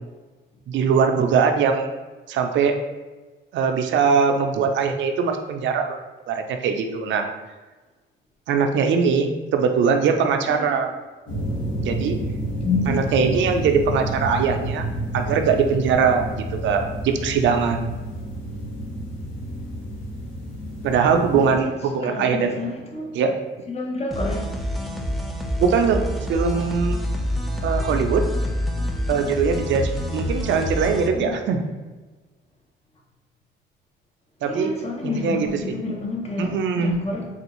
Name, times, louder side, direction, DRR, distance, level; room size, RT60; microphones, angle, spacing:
voice 1, 0.7-1.9 2.3-2.7 3.5-6.0 6.3-7.3 8.5-10.9 11.8-12.2 12.9-14.9 15.1-16.2 16.6-17.9 20.8-22.5 23.1-23.3 25.6-26.0 26.3-27.0 27.6-28.2 29.1-31.6 34.4-34.7 35.0-35.7 36.4-36.9, right 6 dB, 70° right, 5 dB, 0.4 m, -21 dB
sound 1, 11.3-21.6, right 1 dB, 80° left, 1.0 m, -30 dB
voice 2, 12.6-13.1 21.3-21.7 22.0-23.1 23.7-24.4 31.1-31.4 34.4-37.3, left 3 dB, 30° left, 0 dB, 0.7 m, -28 dB
sound 2, 24.1-31.1, left 1 dB, ahead, 0.4 m, -27 dB
3.4 x 2.4 x 2.9 m, 1.2 s
cardioid pair, 90°, 20 cm